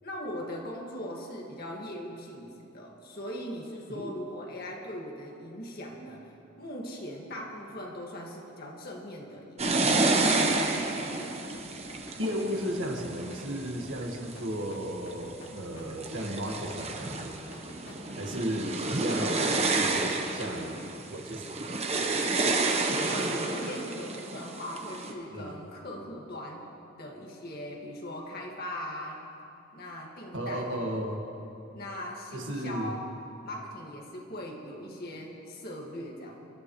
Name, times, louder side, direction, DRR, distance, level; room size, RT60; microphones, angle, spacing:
voice 1, 0.0-10.0 23.1-26.7 27.0-29.3 29.7-30.8 31.7-33.0 33.4-36.4, left 1 dB, 50° left, -1 dB, 2.0 m, -40 dB
sound 1, 9.6-14.3 14.9-15.5 15.9-25.1, right 3 dB, 30° right, 1.0 m, -30 dB
sound 2, 9.8-10.2 10.5-18.4, left 1 dB, 70° left, 2.7 m, -48 dB
voice 2, 12.2-17.3 18.2-21.6 25.3-25.6 30.3-31.3 32.3-32.9, equal, 65° right, 1 dB, 1.8 m, -34 dB
26.0 x 12.5 x 3.2 m, 2.9 s
head